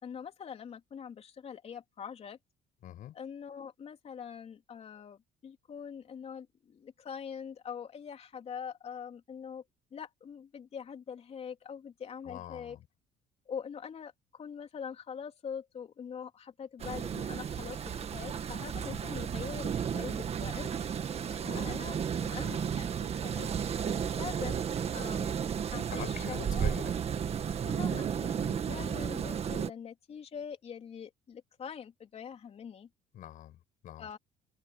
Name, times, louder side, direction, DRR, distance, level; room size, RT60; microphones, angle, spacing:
voice 1, 0.0-2.4 3.1-9.6 9.9-12.8 13.5-17.8 18.1-20.7 21.5-23.5 24.1-24.6 24.9-25.3 25.7-26.8 27.7-32.9 34.0-34.2, left 7 dB, 45° left, 3.5 m, -43 dB
voice 2, 2.8-3.2 12.2-12.9 18.8-19.0 21.4-21.8 25.9-26.9 28.6-29.1 33.1-34.2, left 12 dB, 65° left, 6.2 m, -45 dB
sound 1, 16.8-29.7, right 7 dB, 45° right, 1.8 m, -33 dB
open air
cardioid pair, 95°, 15 cm